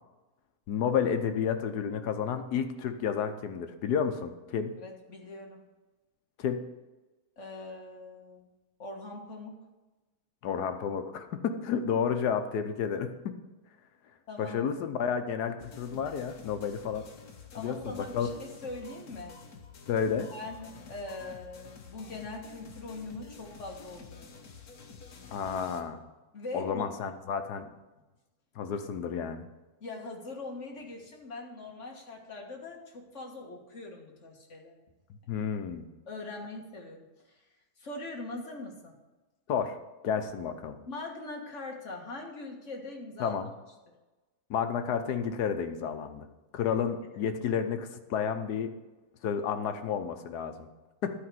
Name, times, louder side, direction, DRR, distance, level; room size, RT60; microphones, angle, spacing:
voice 1, 0.7-4.7 6.4-6.6 10.4-13.1 14.4-17.0 17.6-18.3 19.9-20.3 25.3-26.0 26.5-27.7 28.6-29.4 35.3-35.9 39.5-39.8 40.0-40.7 43.2-43.5 44.5-46.3 46.5-48.7 49.2-50.5 51.0-51.1, left 7 dB, 85° left, 8 dB, 1.4 m, -31 dB
voice 2, 4.8-5.6 7.4-8.5 8.8-9.6 14.3-14.7 17.5-19.4 20.3-24.3 26.3-26.9 29.8-34.8 35.3-35.4 36.1-37.4 37.8-39.0 40.9-43.4 46.7-46.8, left 2 dB, 50° left, 1 dB, 2.0 m, -42 dB
sound 1, 15.6-25.8, left 5 dB, 70° left, 1.6 m, -50 dB
11.5 x 5.0 x 7.7 m, 1.1 s
omnidirectional pair, 1.7 m